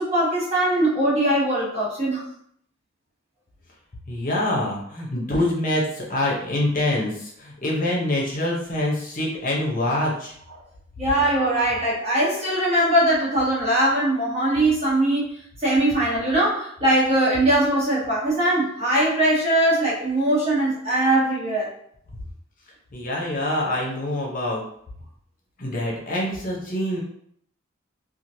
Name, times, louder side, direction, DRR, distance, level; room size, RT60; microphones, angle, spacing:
voice 1, 0.0-2.2 11.0-15.3 15.6-21.7, right 1 dB, 30° right, -7 dB, 1.1 m, -21 dB
voice 2, 4.1-10.3 22.9-24.6 25.6-27.0, left 1 dB, 45° left, -3 dB, 0.8 m, -25 dB
3.0 x 2.4 x 2.6 m, 0.67 s
head